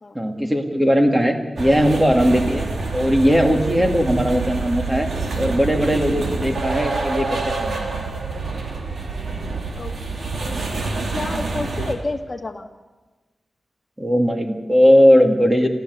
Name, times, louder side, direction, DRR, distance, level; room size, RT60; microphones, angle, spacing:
voice 1, 0.1-5.1 5.4-7.9 14.0-15.7, equal, 10° right, 4 dB, 2.4 m, -18 dB
sound 1, 1.6-11.9, right 3 dB, 55° right, 2.9 m, -27 dB
voice 2, 10.4-10.7 11.1-12.7, left 2 dB, 30° left, 3 dB, 2.0 m, -29 dB
28.5 x 14.5 x 8.2 m, 1.2 s
wide cardioid pair, 140°, 0 cm